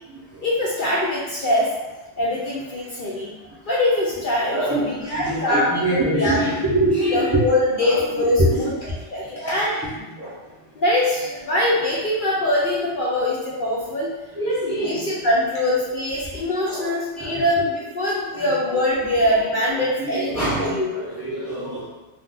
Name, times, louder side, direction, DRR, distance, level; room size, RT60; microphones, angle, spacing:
voice 1, 0.4-1.7 2.2-3.3 3.7-6.4 7.1-8.7 9.1-9.7 10.8-14.1 14.5-20.9, left 1 dB, 60° left, -5 dB, 0.6 m, -23 dB
voice 2, 4.5-7.4 7.8-8.0 8.4-9.0 9.4-9.6 10.2-10.3 14.4-15.1 16.6-16.9 17.2-17.4 18.4-18.5 19.8-21.9, right 1 dB, 20° right, -8 dB, 0.4 m, -24 dB
2.4 x 2.3 x 3.7 m, 1.1 s
omnidirectional pair, 1.2 m